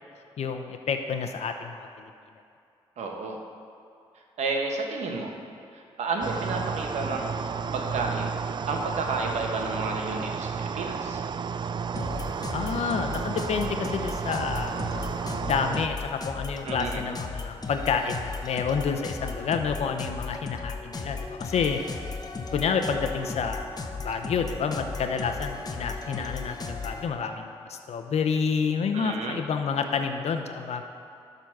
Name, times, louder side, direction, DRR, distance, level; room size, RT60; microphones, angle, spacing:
voice 1, 0.4-2.0 12.5-14.8 15.4-21.8 22.5-30.8, left 6 dB, 65° left, 6 dB, 0.8 m, -29 dB
voice 2, 3.0-3.4 4.4-5.3 5.7-8.4 8.7-11.2 16.6-17.0 28.9-29.4, right 3 dB, 75° right, 2 dB, 1.3 m, -31 dB
sound 1, 6.2-15.9, right 6 dB, 40° right, 0.3 m, -32 dB
sound 2, 11.9-27.1, left 4 dB, 35° left, 1.0 m, -36 dB
12.0 x 4.0 x 5.9 m, 2.6 s
supercardioid pair, 50°, 12 cm